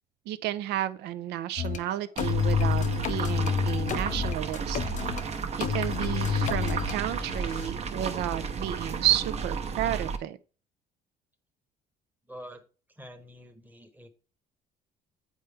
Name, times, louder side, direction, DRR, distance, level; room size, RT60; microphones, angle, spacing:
voice 1, 0.3-4.8 5.6-10.4, right 12 dB, 80° right, 0.6 m, -31 dB
sound 1, 1.6-1.8 2.2-5.2 5.6-7.0, left 7 dB, 45° left, 0.6 m, -28 dB
sound 2, 2.2-10.2, right 5 dB, 40° right, 0.9 m, -33 dB
sound 3, 6.3-8.6, left 3 dB, 70° left, 0.8 m, -48 dB
voice 2, 12.3-12.6 12.9-14.1, equal, 10° right, 1.1 m, -46 dB
8.2 x 4.5 x 3.4 m
cardioid pair, 110°, 17 cm